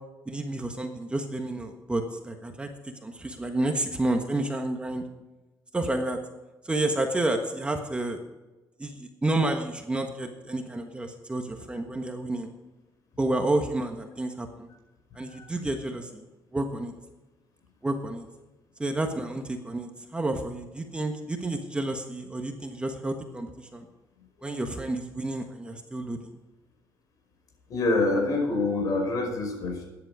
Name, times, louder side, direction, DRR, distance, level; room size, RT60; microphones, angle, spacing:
voice 1, 0.3-5.0 5.7-6.2 6.6-8.2 8.8-12.5 13.2-14.7 15.1-16.2 16.5-16.9 17.8-18.3 18.8-23.9 24.4-26.3, right 2 dB, 15° right, 4 dB, 1.4 m, -30 dB
voice 2, 27.7-29.8, left 2 dB, 55° left, 2 dB, 5.1 m, -26 dB
13.5 x 10.5 x 4.9 m, 1.1 s
cardioid pair, 115°, 7 cm